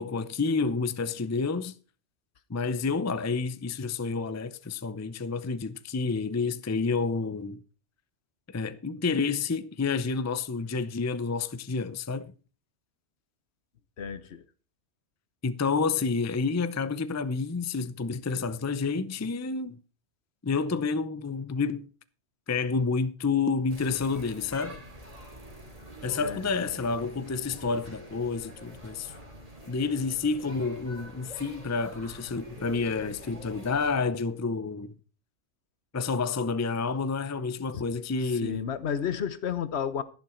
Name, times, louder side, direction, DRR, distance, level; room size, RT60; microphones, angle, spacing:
voice 1, 0.0-1.7 2.5-7.6 8.5-12.3 15.4-19.8 20.4-21.9 22.5-24.8 26.0-29.1 29.7-34.9 35.9-38.7, left 4 dB, 20° left, 0.5 m, -29 dB
voice 2, 14.0-14.4 26.2-26.4 38.4-40.0, left 8 dB, 65° left, 1.1 m, -31 dB
sound 1, 23.7-33.9, equal, 30° right, 2.8 m, -46 dB
12.0 x 10.5 x 4.4 m
omnidirectional pair, 1.2 m